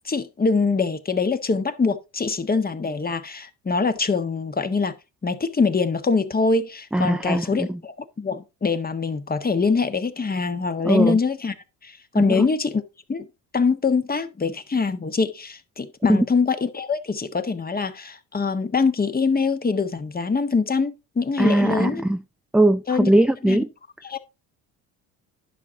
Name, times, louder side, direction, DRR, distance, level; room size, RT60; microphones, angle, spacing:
voice 1, 0.0-4.9 5.2-11.5 11.8-12.8 13.1-13.2 13.5-22.0 22.9-23.1 23.4-23.6 24.0-24.2, left 4 dB, 25° left, 1.4 m, -23 dB
voice 2, 6.9-7.8 10.8-11.2 12.1-12.4 16.1-16.3 21.4-22.2 22.5-23.7, right 1 dB, ahead, 0.5 m, -20 dB
11.0 x 6.2 x 3.7 m
supercardioid pair, 75°, 39 cm